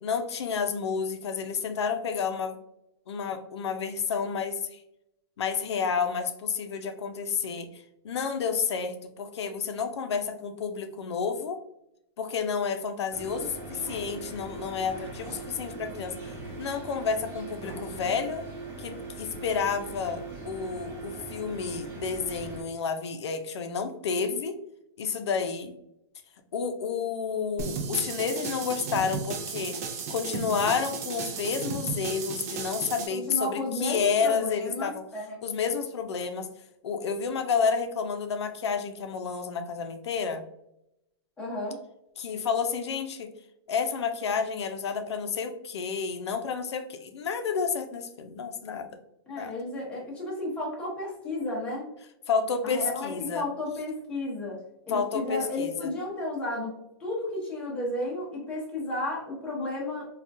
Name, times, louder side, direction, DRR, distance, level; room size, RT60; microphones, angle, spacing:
voice 1, 0.0-2.6 3.1-4.8 5.4-11.6 12.2-16.3 16.6-18.5 18.8-24.6 25.0-25.7 26.5-29.8 30.1-35.0 35.4-36.5 36.8-40.4 42.2-43.3 43.7-48.9 49.4-49.5 52.3-53.5 54.9-55.9, left 6 dB, 85° left, 7 dB, 0.5 m, -30 dB
sound 1, 13.1-22.6, right 3 dB, 20° right, 1.0 m, -40 dB
sound 2, 27.6-33.1, right 5 dB, 35° right, 0.4 m, -34 dB
voice 2, 33.1-35.4 41.4-41.8 49.3-51.9 52.6-54.6 54.9-56.7 57.0-60.1, left 1 dB, 10° left, -4 dB, 0.7 m, -33 dB
3.6 x 2.3 x 2.5 m, 0.82 s
hypercardioid pair, 165°, 14 cm